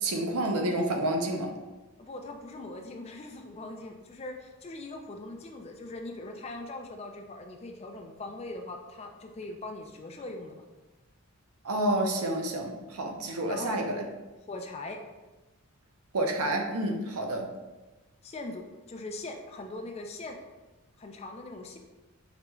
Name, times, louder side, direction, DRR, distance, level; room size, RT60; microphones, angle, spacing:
voice 1, 0.0-1.5 11.6-14.0 16.1-17.5, right 1 dB, 85° right, 3 dB, 0.6 m, -29 dB
voice 2, 2.0-10.6 13.5-14.0 14.5-15.0 18.2-20.4 21.0-21.8, left 2 dB, 30° left, 4 dB, 0.3 m, -41 dB
4.9 x 3.0 x 2.2 m, 1.2 s
head